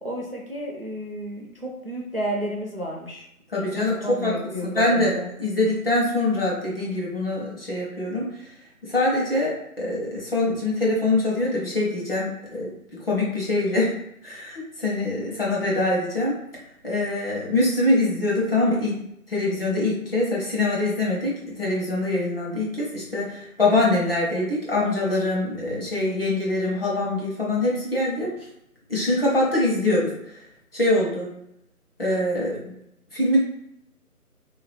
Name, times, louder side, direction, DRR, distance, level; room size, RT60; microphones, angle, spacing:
voice 1, 0.0-3.2 3.6-5.3, equal, 40° right, -1 dB, 0.5 m, -32 dB
voice 2, 3.5-3.9 4.2-4.3 4.7-8.2 8.9-13.9 14.2-16.3 16.8-19.0 19.3-28.3 28.9-30.1 30.7-31.3 32.0-32.7 33.1-33.4, left 2 dB, 40° left, -5 dB, 1.2 m, -24 dB
3.2 x 2.8 x 3.4 m, 0.78 s
figure-of-eight pair, 175°, 45 cm